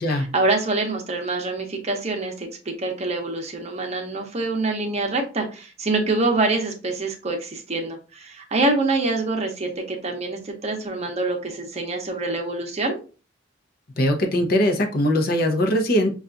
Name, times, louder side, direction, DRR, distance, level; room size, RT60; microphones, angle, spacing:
voice 1, 0.1-2.5 2.8-13.0, right 2 dB, 35° right, 3 dB, 0.7 m, -25 dB
voice 2, 14.0-16.1, left 1 dB, 50° left, 4 dB, 0.7 m, -21 dB
5.5 x 2.4 x 2.4 m, 0.34 s
head